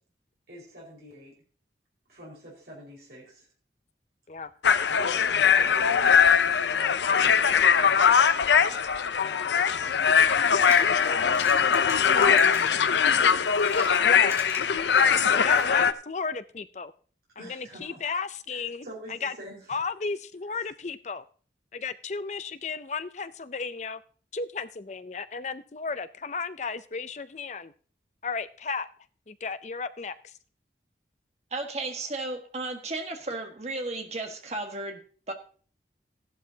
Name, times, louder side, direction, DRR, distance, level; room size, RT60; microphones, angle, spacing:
voice 1, 0.5-1.3 2.1-3.4 4.9-8.8 9.1-10.3 12.4-13.3 13.9-14.3 17.4-18.0 18.5-19.8 20.5-20.6, equal, 65° right, 4.9 m, -45 dB
sound 1, 4.6-15.9, left 7 dB, 85° left, 0.6 m, -21 dB
voice 2, 5.4-6.0 9.5-9.9 10.8-11.4 12.1-12.4 14.0-14.3 15.3-16.9 17.4-19.3 19.7-21.2 21.7-24.0 24.3-27.7 28.2-28.9 29.3-30.3, left 5 dB, 40° left, 0.5 m, -34 dB
sound 2, 10.4-15.7, right 1 dB, 15° right, 2.8 m, -42 dB
voice 3, 31.5-35.3, right 2 dB, 40° right, 1.5 m, -34 dB
14.5 x 12.0 x 2.8 m
head